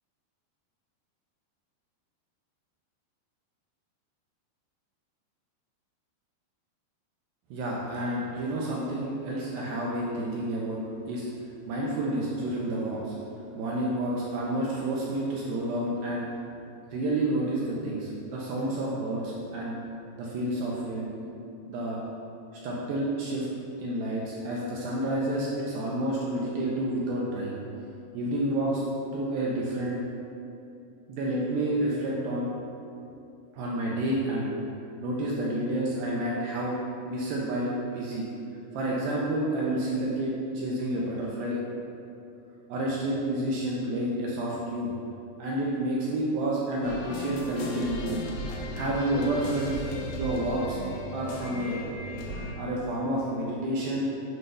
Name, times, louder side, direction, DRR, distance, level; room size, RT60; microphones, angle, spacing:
voice 1, 7.5-10.8 11.1-11.3 11.7-13.2 13.6-16.3 16.9-19.8 20.2-21.1 21.7-22.0 22.6-23.5 23.8-27.6 28.1-28.8 29.1-30.0 31.1-32.5 33.5-34.5 35.0-36.8 37.0-38.3 38.7-41.6 42.7-44.9 45.4-48.3 48.7-49.7 50.2-50.8 51.1-51.8 52.6-54.1, right 1 dB, 80° right, -4 dB, 2.2 m, -29 dB
sound 1, 46.8-52.5, left 1 dB, 80° left, 2.8 m, -37 dB
7.7 x 3.2 x 5.5 m, 2.6 s
omnidirectional pair, 4.9 m